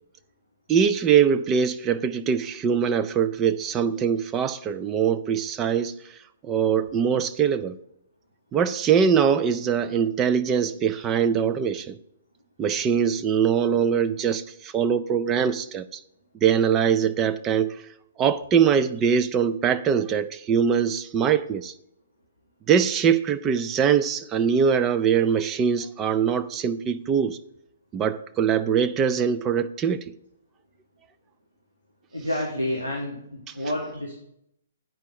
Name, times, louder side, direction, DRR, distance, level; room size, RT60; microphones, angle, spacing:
voice 1, 0.7-6.2 6.4-7.8 8.5-12.0 12.6-16.0 16.4-17.8 18.2-21.7 22.7-27.4 27.9-30.1, right 7 dB, 20° right, 0.4 m, -22 dB
voice 2, 32.1-34.2, left 1 dB, 90° right, 2.0 m, -29 dB
9.1 x 5.2 x 6.0 m
figure-of-eight pair, 120°, 0 cm